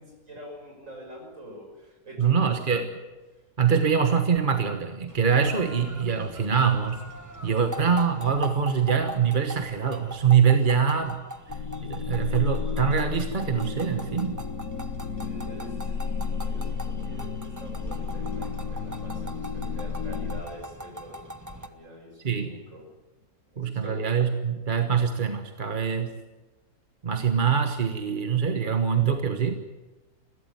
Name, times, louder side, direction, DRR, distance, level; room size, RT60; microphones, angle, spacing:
voice 1, 0.0-2.9 7.3-7.7 15.2-22.9 23.5-24.0, equal, 50° right, 2 dB, 6.3 m, -45 dB
voice 2, 2.2-2.9 3.6-7.0 7.4-11.2 11.8-14.4 22.2-22.5 23.6-26.2 27.0-29.6, right 7 dB, 35° right, 6 dB, 1.3 m, -24 dB
sound 1, 5.1-21.7, equal, 15° right, 1.0 m, -41 dB
sound 2, 11.5-20.4, left 5 dB, 60° left, 1.6 m, -32 dB
21.5 x 16.0 x 9.6 m, 1.2 s
omnidirectional pair, 1.7 m